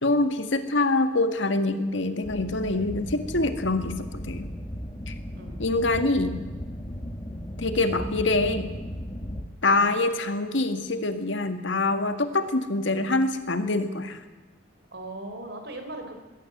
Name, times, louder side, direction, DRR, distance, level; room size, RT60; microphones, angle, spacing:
voice 1, 0.0-4.5 5.1-5.2 5.6-6.4 7.6-8.8 9.6-14.2, left 2 dB, 70° left, 8 dB, 1.9 m, -25 dB
sound 1, 2.2-9.4, equal, 25° left, 1.7 m, -36 dB
voice 2, 14.9-16.1, right 2 dB, 60° right, 6 dB, 4.0 m, -38 dB
21.0 x 17.0 x 8.0 m, 1.2 s
head